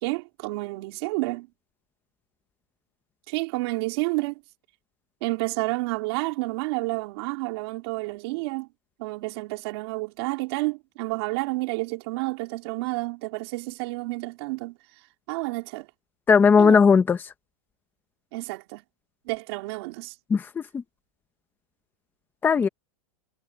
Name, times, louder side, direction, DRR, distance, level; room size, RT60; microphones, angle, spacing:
voice 1, 0.0-1.5 3.3-4.4 5.2-8.7 9.0-14.8 15.3-15.9 16.6-16.8 18.3-18.8 19.3-20.1, right 23 dB, 45° right, 3.7 m, -30 dB
voice 2, 16.3-17.3 20.3-20.8 22.4-22.7, left 5 dB, 10° left, 1.0 m, -18 dB
supercardioid pair, 160°, 17 cm